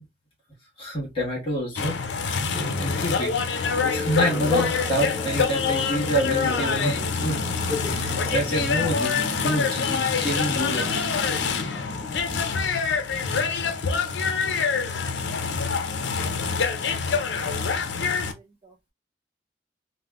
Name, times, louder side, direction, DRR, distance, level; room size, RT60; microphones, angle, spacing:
voice 1, 0.8-2.0 2.3-7.4 7.8-11.1, equal, 30° left, 1.3 m, -28 dB
sound 1, 1.8-18.3, left 5 dB, 90° left, 0.5 m, -26 dB
sound 2, 2.5-12.6, left 1 dB, 10° left, 1.5 m, -35 dB
voice 2, 13.8-14.2 14.4-14.5 14.9-15.1 16.9-17.2 18.0-18.9, right 3 dB, 30° right, 0.5 m, -53 dB
3.4 x 2.1 x 2.4 m
head